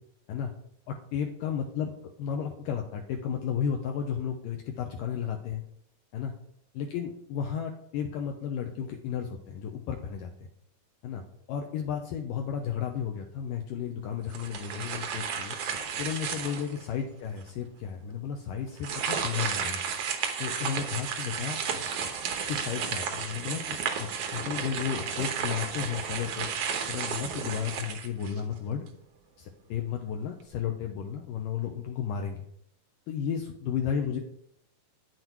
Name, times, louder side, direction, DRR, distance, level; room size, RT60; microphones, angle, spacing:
voice 1, 0.9-1.9 2.2-5.6 6.1-6.3 6.7-10.5 11.0-15.6 16.0-20.1 20.4-21.8 22.5-26.5 26.9-28.9 29.4-32.5 33.1-34.2, left 8 dB, 75° left, 3 dB, 2.2 m, -33 dB
sound 1, 14.3-16.8 17.4-17.5 18.8-28.6, right 6 dB, 70° right, 1.4 m, -33 dB
9.5 x 8.0 x 4.5 m, 0.70 s
omnidirectional pair, 4.4 m